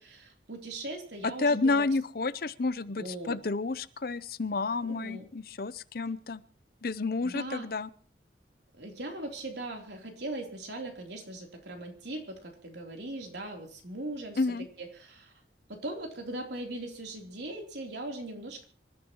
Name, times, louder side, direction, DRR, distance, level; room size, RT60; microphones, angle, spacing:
voice 1, 0.0-1.9 2.9-3.4 4.8-5.3 7.2-7.7 8.8-14.4 14.8-15.3 15.7-18.7, right 2 dB, 75° right, 2 dB, 3.6 m, -39 dB
voice 2, 1.4-6.4 6.8-7.9 14.4-14.6, left 3 dB, 55° left, 16 dB, 0.7 m, -30 dB
26.0 x 14.0 x 3.1 m, 0.41 s
head